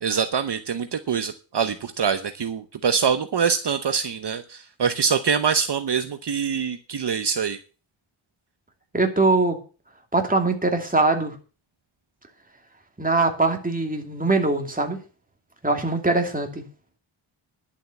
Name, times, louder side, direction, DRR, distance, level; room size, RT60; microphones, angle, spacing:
voice 1, 0.0-7.6, right 6 dB, 55° right, 9 dB, 0.9 m, -24 dB
voice 2, 8.9-9.6 10.1-11.4 13.0-15.0 15.6-16.6, right 3 dB, 15° right, 3 dB, 2.6 m, -22 dB
11.0 x 7.5 x 7.1 m, 0.36 s
wide cardioid pair, 100°, 50 cm